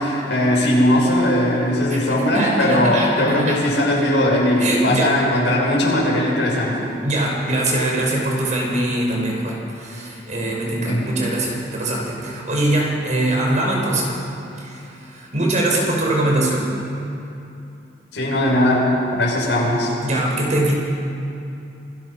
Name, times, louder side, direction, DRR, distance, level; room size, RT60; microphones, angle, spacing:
voice 1, 0.0-6.9 10.9-11.1 18.1-19.9, left 1 dB, 90° left, -3 dB, 6.6 m, -19 dB
voice 2, 2.3-3.6 4.6-5.1 7.0-14.1 14.6-16.7 20.0-20.7, right 1 dB, 45° right, -2 dB, 5.4 m, -22 dB
26.5 x 19.5 x 5.8 m, 2.7 s
head